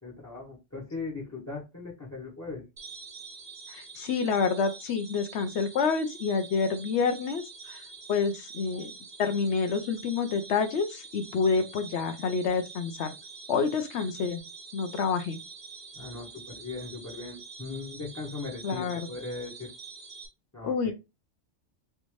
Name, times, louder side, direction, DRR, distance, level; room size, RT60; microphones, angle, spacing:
voice 1, 0.0-2.6 15.9-19.7 20.5-20.9, left 3 dB, 15° left, 0.8 m, -39 dB
sound 1, 2.8-20.3, right 4 dB, 45° right, 0.9 m, -46 dB
voice 2, 3.7-7.8 8.1-8.9 9.2-13.1 13.5-14.4 14.7-15.4 18.6-19.1 20.6-20.9, left 5 dB, 70° left, 0.8 m, -28 dB
3.4 x 2.6 x 3.1 m
omnidirectional pair, 1.3 m